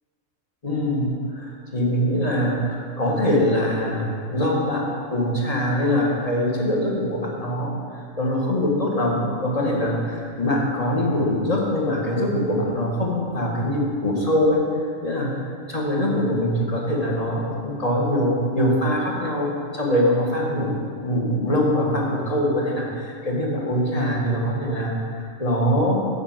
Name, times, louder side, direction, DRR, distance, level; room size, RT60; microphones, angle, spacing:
voice 1, 0.6-4.8 5.1-14.6 15.0-15.3 15.7-20.7 21.0-26.1, equal, 25° left, -2 dB, 1.7 m, -23 dB
9.5 x 5.5 x 7.8 m, 2.2 s
omnidirectional pair, 1.5 m